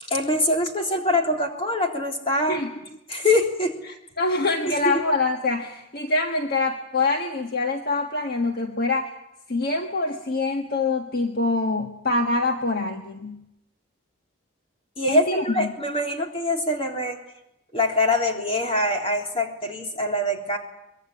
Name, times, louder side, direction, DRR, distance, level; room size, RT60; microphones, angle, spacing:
voice 1, 0.1-2.6 3.1-3.8 4.6-5.0 15.0-17.2 17.7-20.6, left 1 dB, 30° left, 2 dB, 3.6 m, -24 dB
voice 2, 3.9-9.1 9.5-13.4 15.1-15.7, left 3 dB, 45° left, 4 dB, 1.6 m, -25 dB
24.0 x 21.5 x 9.9 m, 0.87 s
head